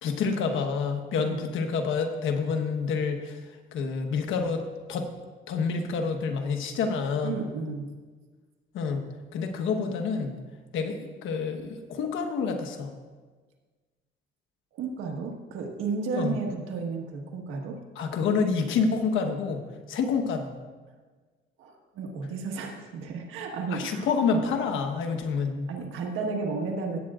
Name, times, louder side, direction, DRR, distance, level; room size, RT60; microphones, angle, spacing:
voice 1, 0.0-3.4 3.7-4.6 4.9-5.1 5.5-7.4 8.7-10.4 10.7-12.9 16.1-16.4 18.0-19.6 19.9-20.5 23.7-25.7, left 5 dB, 80° left, 5 dB, 1.2 m, -28 dB
voice 2, 7.2-7.9 14.7-17.8 21.6-24.1 25.7-27.0, right 4 dB, 90° right, 2 dB, 1.5 m, -33 dB
17.0 x 8.8 x 2.5 m, 1.4 s
cardioid pair, 90°, 20 cm